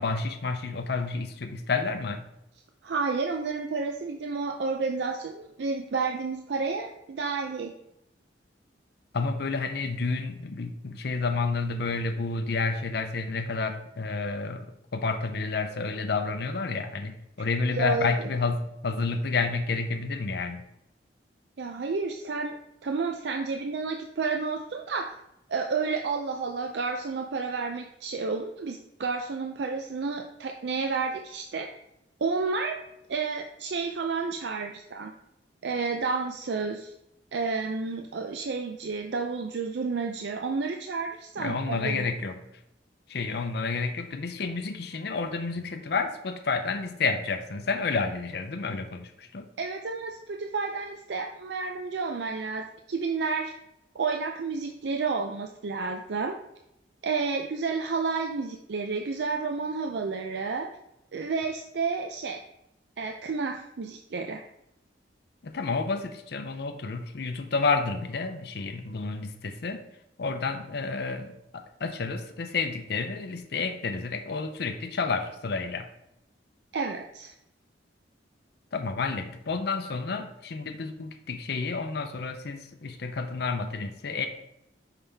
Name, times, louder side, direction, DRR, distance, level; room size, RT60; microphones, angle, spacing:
voice 1, 0.0-2.2 9.1-14.7 14.9-20.6 41.4-42.4 43.1-49.5 65.4-69.8 70.2-75.9 78.7-84.3, left 4 dB, 60° left, 6 dB, 0.6 m, -30 dB
voice 2, 2.8-7.7 17.7-18.3 21.6-25.2 25.5-31.7 32.2-32.8 33.1-35.1 35.6-36.9 37.3-42.1 49.6-53.5 53.9-56.3 57.0-60.7 61.1-62.4 63.0-64.4 76.7-77.3, right 4 dB, 65° right, 4 dB, 0.5 m, -31 dB
5.6 x 5.5 x 3.4 m, 0.83 s
head